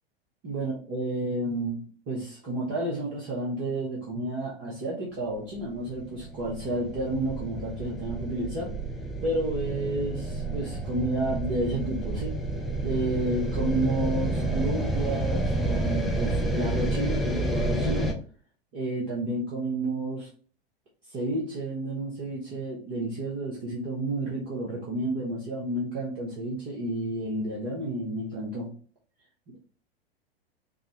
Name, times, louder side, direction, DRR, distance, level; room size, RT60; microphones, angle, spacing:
voice 1, 0.4-1.8 2.1-8.8 9.2-12.4 12.8-18.1 18.7-20.3 21.1-28.7, right 2 dB, 40° right, -4 dB, 1.2 m, -31 dB
sound 1, 5.6-18.1, right 2 dB, ahead, 0.4 m, -30 dB
5.1 x 2.2 x 3.0 m, 0.42 s
figure-of-eight pair, 90°, 31 cm